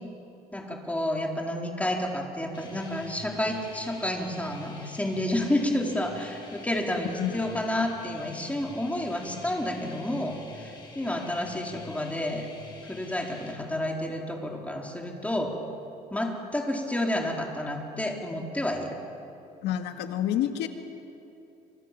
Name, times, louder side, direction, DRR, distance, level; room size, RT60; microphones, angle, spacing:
voice 1, 0.5-12.5 12.8-15.5 16.1-19.0, left 1 dB, 10° left, 0 dB, 4.5 m, -30 dB
sound 1, 2.5-13.5, left 3 dB, 25° left, 7.1 m, -47 dB
voice 2, 7.0-7.5 19.6-20.7, left 11 dB, 85° left, 6 dB, 2.1 m, -29 dB
28.5 x 26.0 x 7.7 m, 2.8 s
cardioid pair, 110°, 17 cm